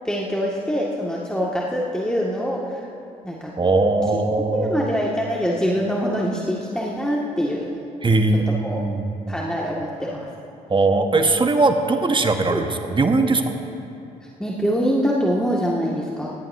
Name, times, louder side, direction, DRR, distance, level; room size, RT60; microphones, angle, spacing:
voice 1, 0.0-2.9 3.2-3.7 4.5-7.8 8.3-8.8 9.3-10.3 12.5-12.6 14.4-16.3, equal, 5° left, -4 dB, 2.0 m, -24 dB
voice 2, 3.6-4.9 8.0-9.4 10.7-13.5, right 3 dB, 25° right, 5 dB, 1.4 m, -20 dB
18.5 x 18.0 x 2.8 m, 2.7 s
hypercardioid pair, 50°, 19 cm